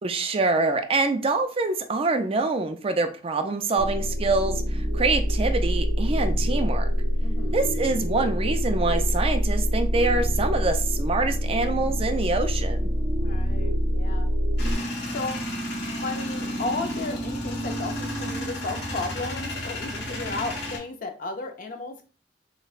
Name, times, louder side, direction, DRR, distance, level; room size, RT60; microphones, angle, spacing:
voice 1, 0.0-6.9 7.5-12.9, right 3 dB, 30° right, 7 dB, 0.4 m, -25 dB
sound 1, 3.8-14.8, equal, 70° right, 0.9 m, -25 dB
voice 2, 7.2-7.7 13.2-14.3 15.0-15.5 16.0-22.1, left 3 dB, 50° left, 5 dB, 0.6 m, -34 dB
Male speech man speaking / Vehicle / Engine starting, 14.6-20.8, equal, 70° left, 1.4 m, -31 dB
6.2 x 2.2 x 2.4 m, 0.37 s
head